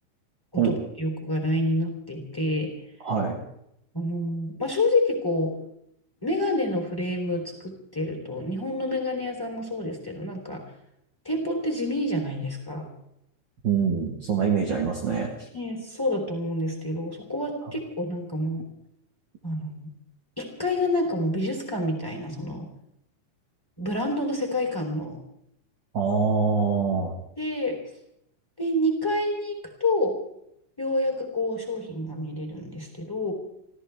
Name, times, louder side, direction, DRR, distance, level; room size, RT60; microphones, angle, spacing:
voice 1, 0.5-2.7 3.9-5.6 6.2-10.6 11.2-12.9 15.5-18.6 19.4-19.9 20.4-22.7 23.8-25.2 27.4-27.8 28.6-30.2 30.8-33.3, left 1 dB, 5° left, 2 dB, 2.8 m, -28 dB
voice 2, 3.0-3.4 13.6-15.5 25.9-27.1, right 6 dB, 65° right, -1 dB, 1.1 m, -24 dB
29.0 x 14.0 x 3.5 m, 0.77 s
omnidirectional pair, 4.8 m